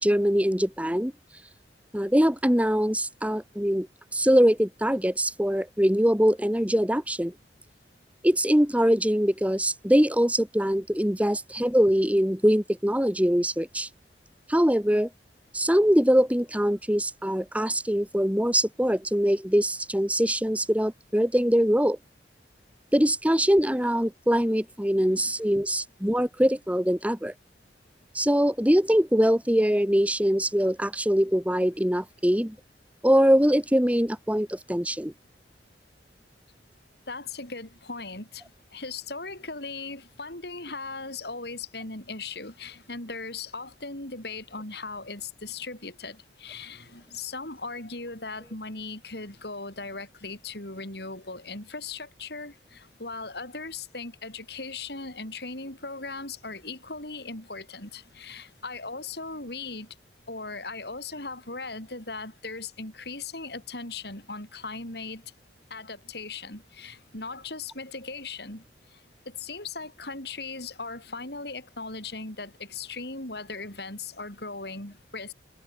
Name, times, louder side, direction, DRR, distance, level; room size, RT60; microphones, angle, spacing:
voice 1, 0.0-1.1 1.9-3.9 4.1-7.3 8.2-13.9 14.5-15.1 15.5-22.0 22.9-27.3 28.1-32.5 33.0-35.1, equal, 10° right, 2.8 m, -23 dB
voice 2, 24.9-25.3 37.1-38.4 38.7-59.9 60.3-65.2 65.7-68.6 69.2-75.3, left 3 dB, 65° left, 6.6 m, -38 dB
head